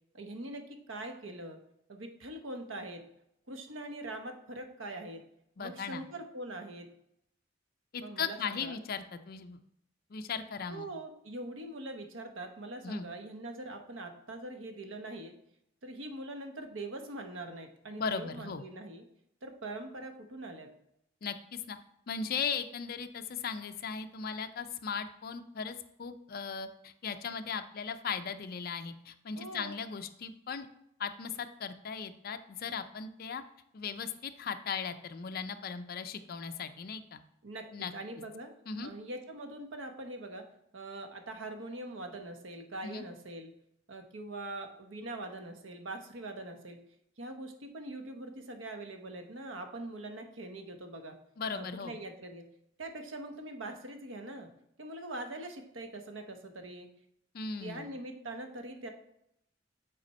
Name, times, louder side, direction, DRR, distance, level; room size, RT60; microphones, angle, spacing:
voice 1, 0.1-1.6 1.9-3.0 3.5-5.2 5.6-6.9 8.0-8.8 10.7-15.3 15.8-19.0 19.4-20.7 29.4-29.8 37.4-38.5 38.8-40.4 40.7-43.5 43.9-46.8 47.2-51.2 51.5-52.4 52.8-54.5 54.8-56.9 57.6-58.9, right 2 dB, 85° right, 6 dB, 1.0 m, -43 dB
voice 2, 5.6-6.0 7.9-9.6 10.1-10.9 12.8-13.1 18.0-18.6 21.2-21.8 22.1-30.7 31.0-33.4 33.7-37.2 37.7-37.9 38.7-38.9 42.8-43.0 51.4-52.0 57.3-57.9, left 6 dB, 50° left, 9 dB, 0.5 m, -37 dB
7.7 x 4.2 x 4.2 m, 0.76 s
head